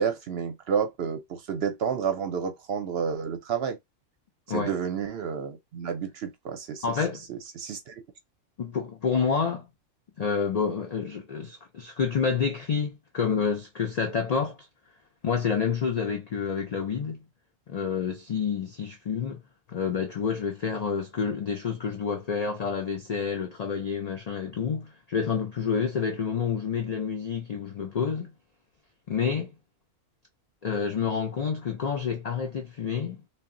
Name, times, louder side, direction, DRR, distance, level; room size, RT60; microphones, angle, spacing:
voice 1, 0.0-3.8 4.5-6.8 7.3-8.0, right 7 dB, 65° right, 0.7 m, -30 dB
voice 2, 6.8-7.2 8.6-9.7 10.2-14.6 15.2-17.2 17.7-19.4 19.7-28.3 29.1-29.5 30.6-33.2, left 6 dB, 70° left, 0.3 m, -28 dB
2.2 x 2.0 x 3.6 m
omnidirectional pair, 1.3 m